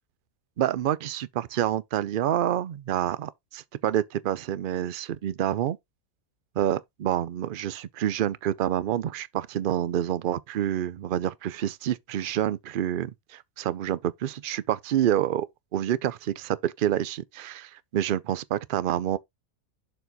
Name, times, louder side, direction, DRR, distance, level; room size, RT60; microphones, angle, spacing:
voice 1, 0.6-5.8 6.6-15.5 15.7-19.2, right 11 dB, 65° right, 0.5 m, -28 dB
6.9 x 4.1 x 4.0 m
omnidirectional pair, 1.5 m